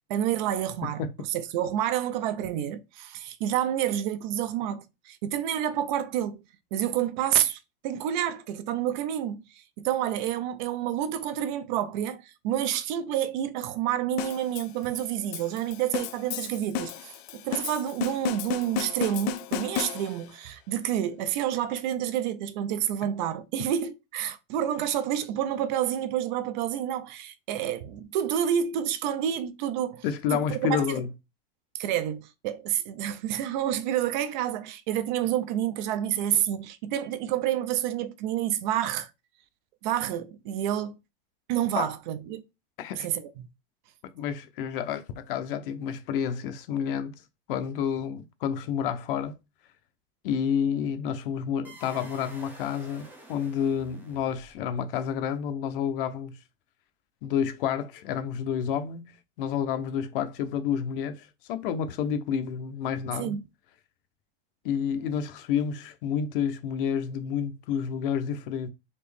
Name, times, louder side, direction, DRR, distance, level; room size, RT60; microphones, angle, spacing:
voice 1, 0.1-1.0 1.3-6.4 6.7-30.0 30.3-31.0 31.7-39.1 39.8-40.9 41.5-42.4 43.0-43.5 63.2-63.5, right 11 dB, 50° right, 0.5 m, -29 dB
sound 1, 14.2-20.4, left 11 dB, 45° left, 0.4 m, -34 dB
voice 2, 30.0-31.1 41.8-41.9 42.8-43.1 44.1-47.1 47.5-49.4 50.2-56.4 57.2-59.1 59.4-63.4 64.6-68.7, left 8 dB, 65° left, 0.8 m, -29 dB
sound 2, 51.6-54.8, right 1 dB, 5° right, 0.8 m, -49 dB
4.3 x 3.0 x 3.4 m
supercardioid pair, 160°, 30 cm